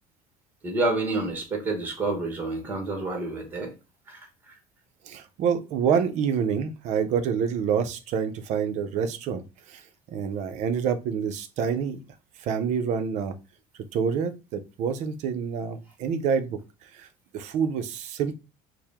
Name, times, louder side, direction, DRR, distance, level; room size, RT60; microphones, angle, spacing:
voice 1, 0.6-3.7 4.1-4.5, right 2 dB, 10° right, 3 dB, 1.0 m, -29 dB
voice 2, 5.0-9.8 10.1-12.0 12.4-13.4 13.9-16.6 16.9-17.1 17.3-18.4, right 7 dB, 50° right, 10 dB, 0.5 m, -27 dB
4.5 x 2.0 x 3.4 m, 0.29 s
cardioid pair, 175°, 16 cm